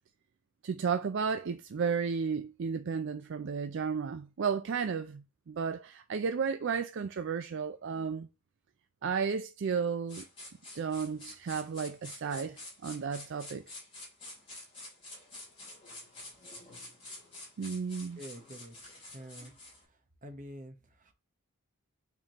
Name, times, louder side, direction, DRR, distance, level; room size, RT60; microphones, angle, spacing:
voice 1, 0.6-8.3 9.0-10.2 10.7-13.6 17.6-18.2, right 6 dB, 55° right, 0.4 m, -33 dB
sound 1, 10.1-19.8, left 2 dB, 25° left, 3.2 m, -48 dB
voice 2, 18.2-19.5 20.2-21.1, equal, 35° right, 1.0 m, -47 dB
8.9 x 3.7 x 2.9 m
head